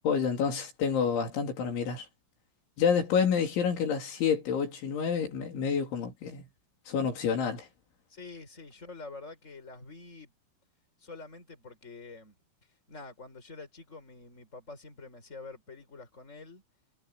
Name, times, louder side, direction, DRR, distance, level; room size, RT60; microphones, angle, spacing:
voice 1, 0.0-2.1 2.8-6.5 6.9-7.7, left 6 dB, 70° left, 5.7 m, -28 dB
voice 2, 8.1-10.3 11.0-12.4 12.9-16.6, left 3 dB, 15° left, 5.9 m, -47 dB
omnidirectional pair, 5.6 m